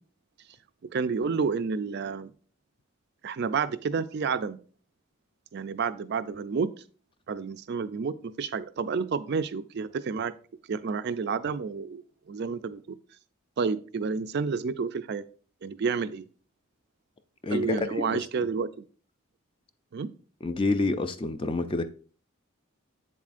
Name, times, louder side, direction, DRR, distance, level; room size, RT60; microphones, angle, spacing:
voice 1, 0.9-2.3 3.2-4.6 5.5-6.7 7.3-10.3 10.7-12.0 12.3-12.8 13.6-15.2 15.6-16.3 17.5-18.7 19.9-20.1, right 5 dB, 50° right, 0.4 m, -30 dB
voice 2, 17.4-18.5 20.4-21.8, left 3 dB, 25° left, 0.4 m, -28 dB
8.0 x 7.2 x 2.5 m
head